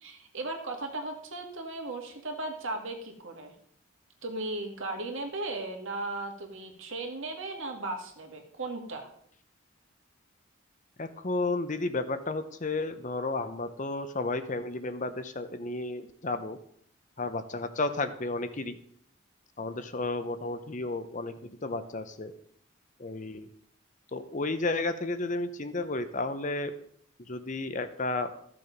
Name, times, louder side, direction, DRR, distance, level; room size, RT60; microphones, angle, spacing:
voice 1, 0.0-3.5 4.2-9.1, right 2 dB, 70° right, 3 dB, 2.0 m, -36 dB
voice 2, 11.0-16.6 17.2-18.8 19.6-22.3 23.0-23.5 24.1-26.7 27.3-28.3, left 2 dB, 35° left, 10 dB, 0.7 m, -32 dB
14.0 x 6.9 x 5.2 m, 0.65 s
head